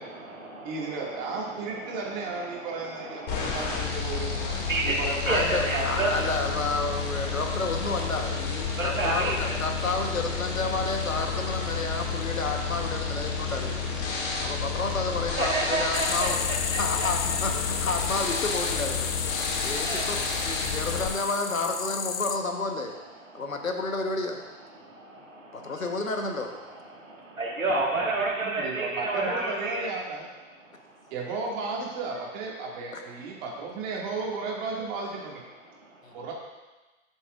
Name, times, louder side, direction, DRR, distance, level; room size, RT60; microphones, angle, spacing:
voice 1, 0.0-6.3 6.8-7.4 8.6-9.6 11.7-12.4 13.2-13.5 14.0-14.8 15.4-17.1 19.3-20.9 23.2-23.6 24.7-26.3 26.6-29.9 30.6-31.1 33.3-33.4 35.7-36.2, right 2 dB, 85° right, -1 dB, 1.9 m, -33 dB
voice 2, 0.6-4.4 4.8-5.4 5.7-6.6 28.4-30.3 31.1-35.4 36.1-36.3, right 4 dB, 35° right, -3 dB, 2.1 m, -34 dB
sound 1, 3.3-21.1, left 4 dB, 40° left, 2.2 m, -31 dB
voice 3, 5.2-13.9 14.4-16.4 16.8-19.1 19.6-23.0 23.3-24.4 25.5-26.5 32.9-33.0 36.0-36.2, left 3 dB, 85° left, 4 dB, 1.2 m, -31 dB
sound 2, 15.9-22.4, left 8 dB, 60° left, 0.6 m, -32 dB
11.5 x 6.9 x 2.5 m, 1.2 s
figure-of-eight pair, 115°, 39 cm